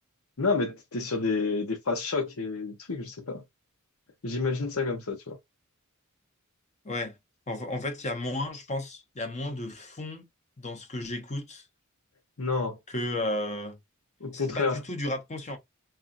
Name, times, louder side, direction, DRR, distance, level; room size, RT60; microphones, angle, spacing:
voice 1, 0.4-3.4 4.2-5.4 12.4-12.8 14.2-14.8, left 4 dB, 80° left, 1.0 m, -29 dB
voice 2, 6.8-7.2 7.5-10.2 10.6-11.6 12.9-13.8 14.3-15.6, left 1 dB, 30° left, 0.8 m, -33 dB
3.5 x 2.4 x 2.5 m
head